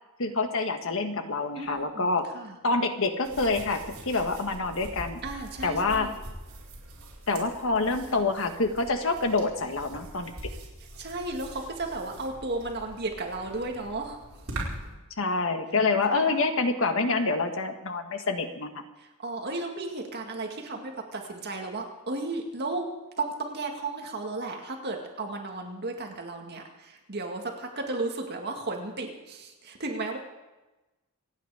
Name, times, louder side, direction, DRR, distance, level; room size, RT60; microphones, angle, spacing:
voice 1, 0.2-2.2 2.6-5.2 5.6-6.1 7.3-10.3 15.2-18.8, left 3 dB, 65° left, 6 dB, 1.6 m, -27 dB
voice 2, 1.6-2.6 5.2-6.2 11.0-14.6 16.1-16.3 19.0-22.9 23.2-30.2, right 2 dB, 50° right, 2 dB, 2.1 m, -34 dB
sound 1, 3.2-15.0, right 1 dB, 65° right, 4.9 m, -43 dB
27.5 x 9.3 x 4.9 m, 1.1 s
head